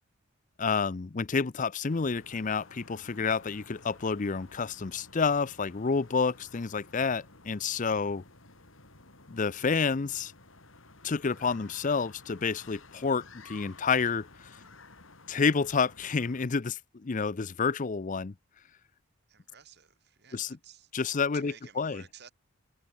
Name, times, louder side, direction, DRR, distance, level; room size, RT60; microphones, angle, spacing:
voice 1, 0.6-8.2 9.3-10.3 11.0-14.3 15.3-18.3 20.3-20.5 20.9-22.0, left 5 dB, 40° left, 0.5 m, -29 dB
sound 1, 1.9-16.5, left 3 dB, 75° left, 4.6 m, -54 dB
voice 2, 11.3-11.7 19.3-22.3, right 7 dB, 55° right, 5.1 m, -55 dB
head